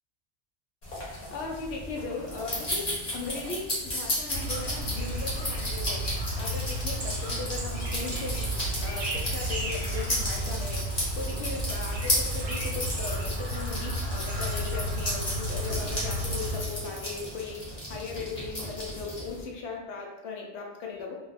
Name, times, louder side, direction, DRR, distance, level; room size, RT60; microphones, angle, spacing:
sound 1, 0.8-19.4, left 1 dB, 40° left, 1.1 m, -34 dB
voice 1, 1.3-6.0 6.4-8.5 8.8-10.9 11.2-21.2, left 4 dB, 70° left, 0 dB, 0.9 m, -38 dB
Chirp tweet, 4.3-16.6, right 1 dB, 40° right, 0.6 m, -32 dB
2.4 x 2.3 x 3.9 m, 1.0 s
omnidirectional pair, 1.2 m